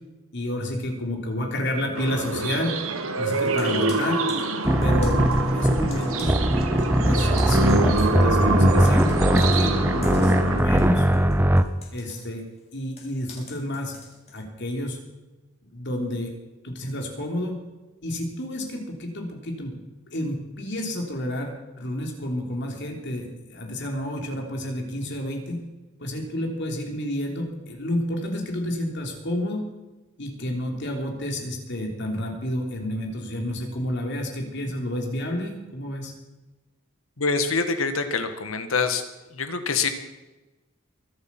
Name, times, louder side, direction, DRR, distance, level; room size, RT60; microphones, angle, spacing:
voice 1, 0.3-2.7 3.2-4.2 4.8-5.3 5.5-6.4 7.0-11.1 11.9-12.4 12.7-14.0 14.3-15.0 15.7-16.3 16.6-17.6 18.0-19.8 20.1-25.6 26.0-29.6 30.2-36.1, left 1 dB, 60° left, 2 dB, 3.4 m, -30 dB
sound 1, 2.0-10.6, right 3 dB, 85° right, 1.4 m, -26 dB
Computer keyboard, 3.3-6.9 7.2-14.4, left 4 dB, 30° left, 3.6 m, -48 dB
sound 2, 4.6-11.6, equal, 10° right, 0.7 m, -20 dB
voice 2, 37.2-39.0 39.3-39.9, left 4 dB, 85° left, 8 dB, 1.6 m, -25 dB
23.0 x 8.2 x 6.0 m, 1.1 s
head